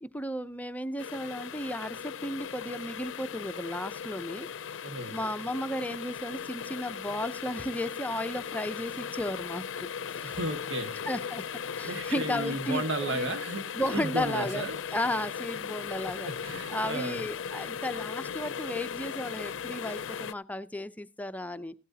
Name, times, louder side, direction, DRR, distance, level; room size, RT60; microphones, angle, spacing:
voice 1, 0.0-4.8 5.1-9.6 10.1-10.4 11.0-11.4 11.8-13.3 13.7-21.7, left 1 dB, 10° left, 0.5 m, -34 dB
sound 1, 1.0-20.3, left 7 dB, 80° left, 0.5 m, -38 dB
voice 2, 4.8-5.2 10.2-11.0 11.8-14.8 16.2-17.2, right 1 dB, 75° right, 1.7 m, -34 dB
16.5 x 12.5 x 2.8 m
head